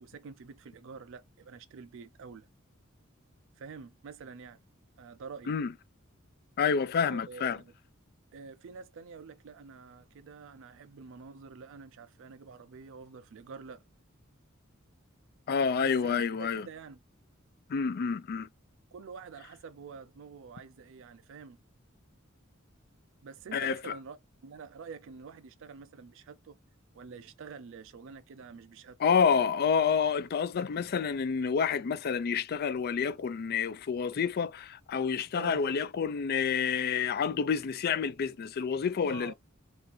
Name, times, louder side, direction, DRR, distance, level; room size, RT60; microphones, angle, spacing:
voice 1, 0.0-2.5 3.6-4.6 5.0-5.5 7.0-7.7 8.3-13.8 15.8-17.0 18.9-21.6 23.2-24.2 24.4-26.6 26.9-29.4 35.3-35.6 39.1-39.3, right 5 dB, 65° right, 0.4 m, -47 dB
voice 2, 6.6-7.6 15.5-16.7 17.7-18.5 23.5-23.9 29.0-39.3, left 6 dB, 50° left, 0.4 m, -28 dB
4.0 x 2.5 x 2.7 m
head